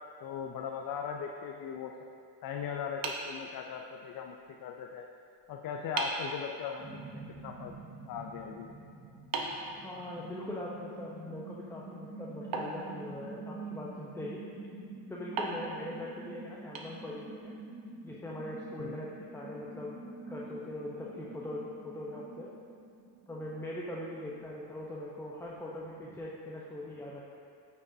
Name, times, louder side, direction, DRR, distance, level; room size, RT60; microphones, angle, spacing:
voice 1, 0.2-1.9 2.4-5.0 5.5-7.7 8.1-8.7 18.8-19.0, left 7 dB, 45° left, 2 dB, 0.6 m, -39 dB
sound 1, 3.0-4.1 5.4-5.5 6.0-6.4 9.3-10.5 12.5-13.6 15.4-17.4, right 3 dB, 45° right, 1.0 m, -39 dB
sound 2, 6.8-24.6 25.0-25.1 25.5-26.2, right 2 dB, 20° right, 1.2 m, -47 dB
voice 2, 9.8-14.4 15.1-17.5 18.0-19.9 20.3-22.5 23.3-27.2, left 1 dB, 5° left, -4 dB, 0.8 m, -41 dB
8.6 x 6.3 x 2.7 m, 2.4 s
supercardioid pair, 75°, 48 cm